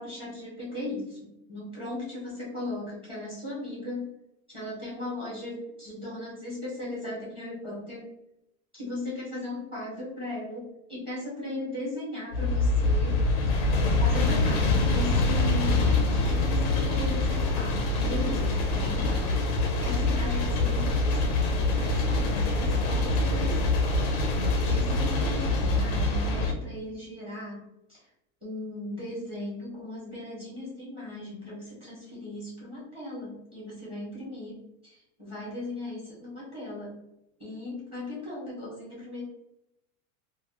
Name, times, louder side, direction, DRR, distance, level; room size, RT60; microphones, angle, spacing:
voice 1, 0.0-4.1 4.5-8.0 8.7-13.2 14.0-19.3 19.8-23.8 24.6-27.6 27.9-28.0 28.4-34.6 35.2-36.9 37.4-39.2, left 1 dB, 15° right, -7 dB, 1.3 m, -37 dB
sound 1, 12.3-26.5, left 2 dB, 30° left, 0.4 m, -25 dB
2.8 x 2.4 x 2.9 m, 0.85 s
supercardioid pair, 155°, 42 cm